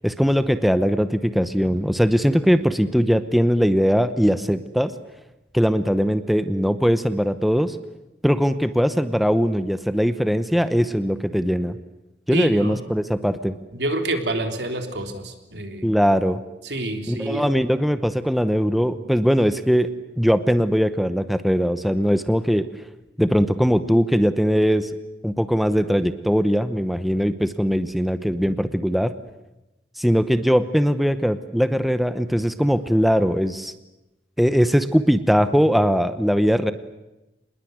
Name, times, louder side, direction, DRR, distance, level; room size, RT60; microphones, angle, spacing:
voice 1, 0.0-4.9 5.5-7.8 8.2-11.8 12.3-13.6 15.8-16.4 17.1-19.9 20.2-22.6 23.2-24.9 25.2-29.1 30.0-33.7 34.4-36.7, equal, ahead, 11 dB, 0.9 m, -20 dB
voice 2, 12.3-12.8 13.7-16.0 16.6-17.5, right 1 dB, 75° right, 5 dB, 3.4 m, -27 dB
26.5 x 20.5 x 9.5 m, 0.98 s
head